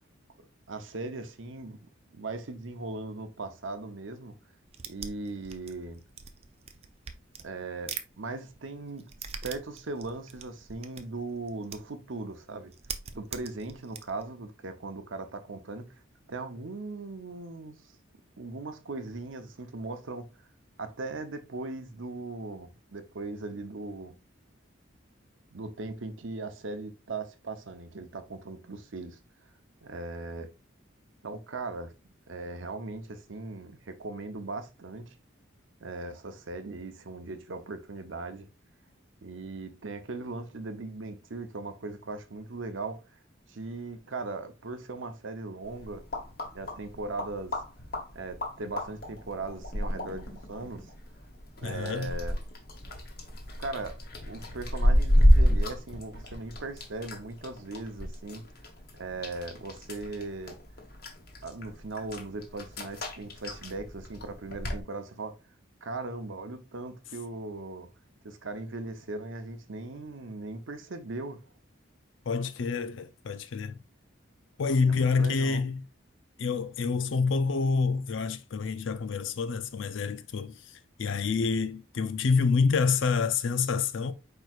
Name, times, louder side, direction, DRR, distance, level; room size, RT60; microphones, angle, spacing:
voice 1, 0.7-1.8 2.1-4.4 4.9-6.0 7.4-9.1 9.4-12.7 13.1-16.0 16.3-18.0 18.4-20.5 20.8-24.1 25.5-29.2 29.8-30.5 31.2-31.9 32.3-35.2 35.8-38.5 39.2-43.2 43.5-46.0 46.5-47.6 48.1-50.9 51.6-52.4 53.6-54.0 54.3-58.4 58.9-60.6 61.4-65.4 65.8-67.9 68.2-71.4 74.9-75.6, right 3 dB, 75° right, 0.8 m, -39 dB
sound 1, 4.7-8.1 8.4-12.0 12.3-12.4 12.7-14.2, right 7 dB, 30° right, 0.4 m, -42 dB
sound 2, 45.6-64.8, equal, 50° left, 1.2 m, -30 dB
voice 2, 51.6-52.1 72.3-73.8 74.6-75.8 76.4-84.1, left 5 dB, 70° left, 0.4 m, -27 dB
4.8 x 4.5 x 2.4 m
head